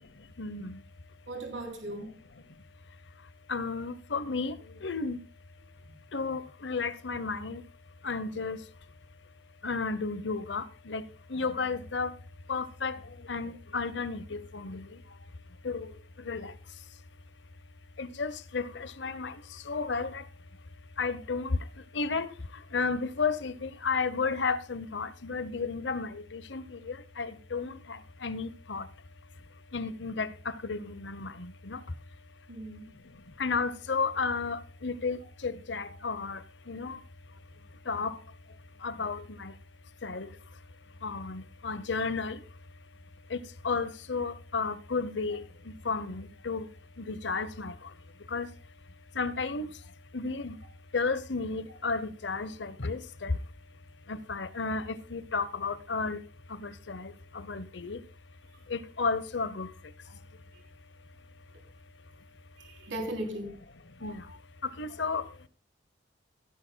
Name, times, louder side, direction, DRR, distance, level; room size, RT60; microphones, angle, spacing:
voice 1, 0.4-0.8 3.5-4.5 4.8-5.2 6.1-7.6 8.0-8.6 9.6-11.0 11.3-12.1 12.5-13.0 13.3-14.9 15.6-15.9 16.3-16.5 18.0-19.3 19.7-20.2 21.0-21.6 21.9-22.3 22.7-28.9 29.7-30.3 30.6-31.8 33.4-36.4 36.7-37.0 37.9-38.2 38.8-39.5 40.0-40.3 41.0-42.4 43.3-43.4 43.6-45.4 45.8-46.7 47.0-47.7 48.3-48.5 49.2-49.7 50.1-50.5 50.9-53.3 54.1-56.2 56.6-58.0 58.7-59.7 64.0-64.2 64.8-65.2, left 4 dB, 65° left, 0.9 m, -33 dB
voice 2, 1.3-2.1 5.9-6.0 32.5-32.9 62.6-63.5, right 1 dB, 75° right, 3.4 m, -37 dB
18.0 x 11.0 x 2.3 m
head